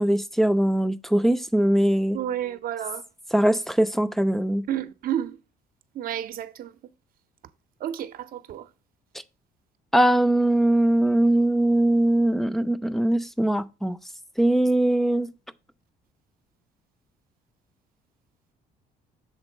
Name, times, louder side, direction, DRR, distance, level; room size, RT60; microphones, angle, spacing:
voice 1, 0.0-2.2 3.3-4.6 9.9-14.0 14.4-15.3, right 1 dB, ahead, 0.4 m, -21 dB
voice 2, 2.1-3.0 4.7-5.4 5.9-6.7 7.8-8.7, right 10 dB, 60° right, 0.7 m, -30 dB
7.2 x 3.7 x 5.2 m
cardioid pair, 110°, 17 cm